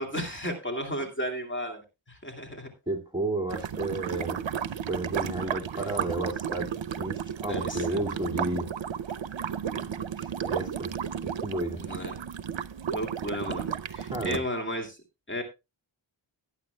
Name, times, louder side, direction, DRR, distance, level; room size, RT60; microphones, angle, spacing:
voice 1, 0.0-2.7 7.5-8.1 11.8-12.1 12.9-15.0 15.3-15.4, equal, 25° left, 2.5 m, -34 dB
voice 2, 2.9-4.4 4.8-8.7 9.7-10.9 11.2-11.8 14.1-14.4, right 2 dB, 10° right, 2.2 m, -32 dB
sound 1, 3.5-14.4, right 8 dB, 70° right, 0.7 m, -33 dB
18.5 x 8.9 x 2.3 m
wide cardioid pair, 90°, 47 cm